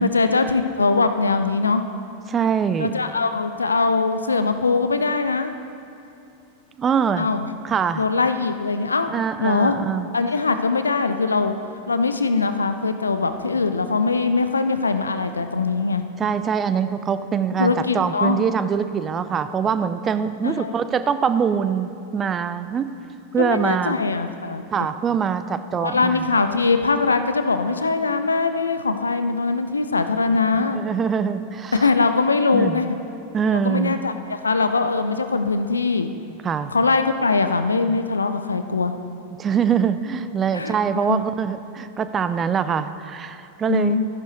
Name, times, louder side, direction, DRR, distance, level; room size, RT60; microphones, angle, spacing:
voice 1, 0.0-1.8 2.8-5.6 7.2-7.5 8.0-9.1 9.4-9.8 10.1-11.5 11.9-16.0 17.6-18.4 20.4-20.7 23.4-24.6 25.8-30.8 31.7-33.0 33.5-36.1 36.7-38.9 40.5-41.2 43.7-44.1, left 4 dB, 75° left, 9 dB, 0.5 m, -21 dB
voice 2, 2.3-2.9 6.8-7.3 7.6-8.0 9.1-10.1 16.2-22.9 23.3-24.0 24.7-26.3 30.5-31.9 32.5-32.9 33.3-34.0 36.4-36.7 39.4-44.0, right 7 dB, 25° right, 12 dB, 0.4 m, -23 dB
13.0 x 11.5 x 3.1 m, 2.6 s
figure-of-eight pair, 90°, 0 cm